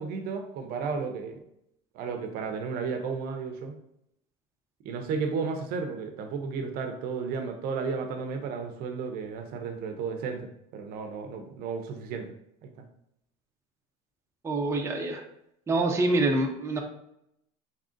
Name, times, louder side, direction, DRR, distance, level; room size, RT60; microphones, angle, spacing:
voice 1, 0.0-1.4 1.9-3.7 4.8-12.3 12.6-12.7, right 5 dB, 55° right, 5 dB, 0.7 m, -33 dB
voice 2, 14.4-15.2 15.7-16.8, right 2 dB, 15° right, 2 dB, 0.6 m, -26 dB
4.1 x 3.7 x 2.5 m, 0.77 s
supercardioid pair, 120°, 18 cm